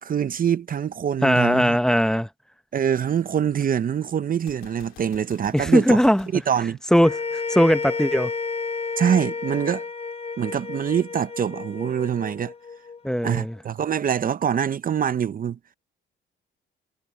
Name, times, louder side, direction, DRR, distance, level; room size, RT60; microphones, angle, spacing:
voice 1, 0.0-1.8 2.7-6.0 6.3-6.8 9.0-9.8 10.4-12.5 13.2-15.6, right 8 dB, 45° right, 0.7 m, -24 dB
voice 2, 1.2-2.3 5.5-6.3 6.9-8.3 13.0-13.5, equal, 5° left, 0.9 m, -19 dB
Gunshot gunfire, 4.4-7.5, left 12 dB, 85° left, 2.9 m, -50 dB
sound 1, 7.0-13.4, left 4 dB, 35° left, 2.9 m, -32 dB
cardioid pair, 90°, 20 cm